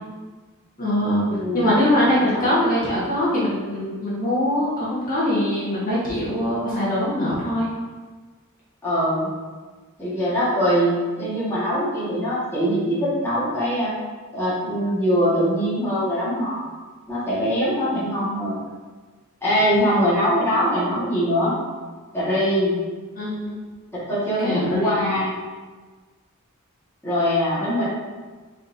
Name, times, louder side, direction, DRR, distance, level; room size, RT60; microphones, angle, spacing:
voice 1, 0.8-1.2 1.5-7.7 23.1-23.6 24.4-25.2, left 1 dB, 40° left, -9 dB, 1.3 m, -22 dB
voice 2, 1.3-1.7 2.2-2.3 8.8-9.3 10.0-13.9 14.3-16.6 17.1-18.6 19.4-21.5 22.1-22.7 24.1-25.4 27.0-27.8, equal, 10° left, -11 dB, 1.5 m, -22 dB
4.3 x 4.1 x 2.6 m, 1.4 s
head